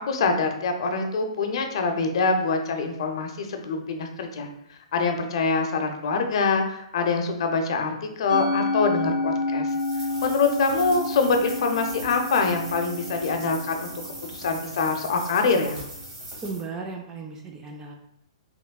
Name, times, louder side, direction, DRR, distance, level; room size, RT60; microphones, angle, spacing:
voice 1, 0.1-9.7 10.2-13.9 14.2-15.8, left 4 dB, 60° left, 5 dB, 0.5 m, -25 dB
Musical instrument, 8.3-14.7, left 3 dB, 70° right, 1.4 m, -30 dB
sound 1, 9.7-16.6, right 1 dB, 30° right, 1.1 m, -40 dB
voice 2, 16.4-17.9, right 4 dB, 15° right, 2 dB, 0.3 m, -35 dB
3.4 x 2.9 x 2.2 m, 0.80 s
hypercardioid pair, 155°, 3 cm